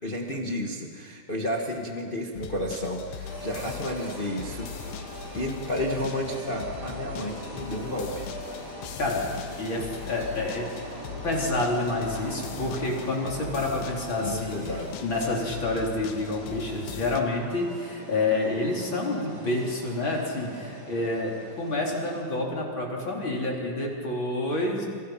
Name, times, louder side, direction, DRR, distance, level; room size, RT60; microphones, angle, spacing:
voice 1, 0.0-5.0 5.3-8.2 14.2-15.0, left 1 dB, 65° left, 1 dB, 0.5 m, -32 dB
sound 1, 2.3-17.2, left 8 dB, 85° left, 3.1 m, -40 dB
sound 2, 3.2-22.2, right 1 dB, 65° right, 7.7 m, -41 dB
voice 2, 9.6-10.7 11.2-14.7 15.0-21.3 21.6-24.9, left 2 dB, 30° left, -2 dB, 4.2 m, -28 dB
28.5 x 27.0 x 5.9 m, 2.1 s
omnidirectional pair, 4.5 m